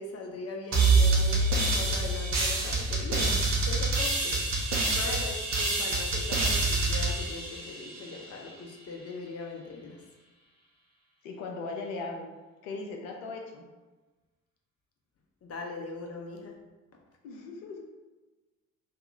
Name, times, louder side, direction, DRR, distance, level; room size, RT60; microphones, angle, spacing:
voice 1, 0.0-10.0 15.4-16.6, left 3 dB, 35° left, 1 dB, 0.7 m, -40 dB
sound 1, 0.7-8.2, right 3 dB, 40° right, 0.8 m, -26 dB
voice 2, 3.1-3.5 11.2-12.3 12.6-13.6 17.2-17.8, left 3 dB, 75° left, 2 dB, 0.6 m, -38 dB
2.8 x 2.4 x 3.6 m, 1.2 s
figure-of-eight pair, 45°, 40 cm